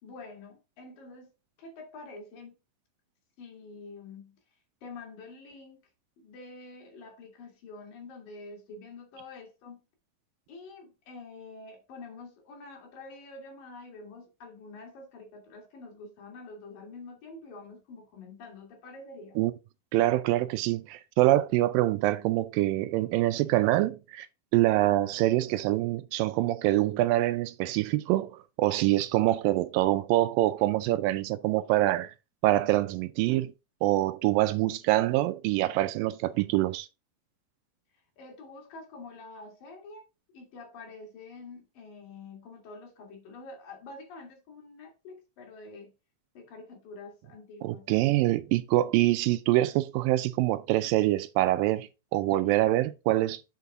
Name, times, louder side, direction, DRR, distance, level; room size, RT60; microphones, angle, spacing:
voice 1, 0.0-1.3 1.6-2.6 3.4-4.4 4.8-5.8 6.2-9.9 10.5-19.4 38.2-40.0 40.3-45.9 46.4-47.9, left 3 dB, 70° left, 3.7 m, -47 dB
voice 2, 19.9-24.3 24.5-32.1 32.4-33.5 33.8-36.9 47.6-53.6, right 16 dB, 80° right, 2.2 m, -25 dB
8.2 x 4.7 x 3.6 m
omnidirectional pair, 4.1 m